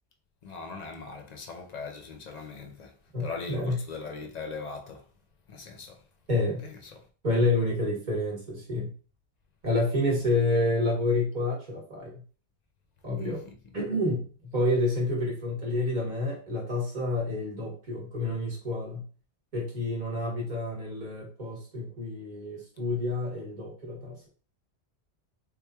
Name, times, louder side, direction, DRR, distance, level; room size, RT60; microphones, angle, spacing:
voice 1, 0.4-5.1 5.5-6.0 6.6-6.8 10.1-10.2 13.2-13.6, left 4 dB, 50° left, 0.5 m, -40 dB
voice 2, 3.1-3.8 6.3-6.6 7.2-8.9 9.6-12.1 13.0-13.4 13.7-19.0 19.5-24.3, left 2 dB, 45° right, 1.2 m, -29 dB
3.6 x 3.1 x 2.2 m
omnidirectional pair, 1.1 m